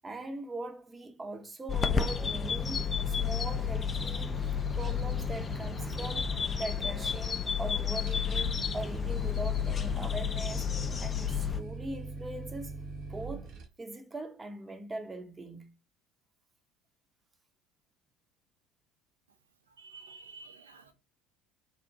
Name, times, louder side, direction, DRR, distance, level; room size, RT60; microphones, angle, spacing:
voice 1, 0.0-10.7 11.0-12.8 13.1-15.7, right 2 dB, 20° right, 0.6 m, -41 dB
sound 1, 1.7-11.6, left 7 dB, 30° left, 0.3 m, -31 dB
sound 2, 2.0-13.6, right 3 dB, 55° right, 0.8 m, -42 dB
voice 2, 19.8-20.9, right 4 dB, 85° right, 0.5 m, -50 dB
2.6 x 2.1 x 2.7 m
figure-of-eight pair, 65°, 0 cm